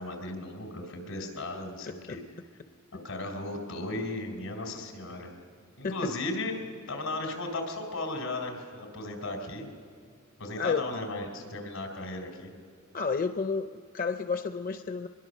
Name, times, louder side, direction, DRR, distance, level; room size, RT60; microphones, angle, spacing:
voice 1, 0.0-2.2 2.9-5.3 5.8-6.5 6.9-9.7 10.4-12.5, left 2 dB, 90° left, 4 dB, 4.0 m, -36 dB
voice 2, 1.9-2.2 2.9-3.0 5.8-6.1 10.6-10.9 12.9-15.1, left 5 dB, 40° left, 9 dB, 0.5 m, -31 dB
22.5 x 22.0 x 6.5 m, 2.3 s
head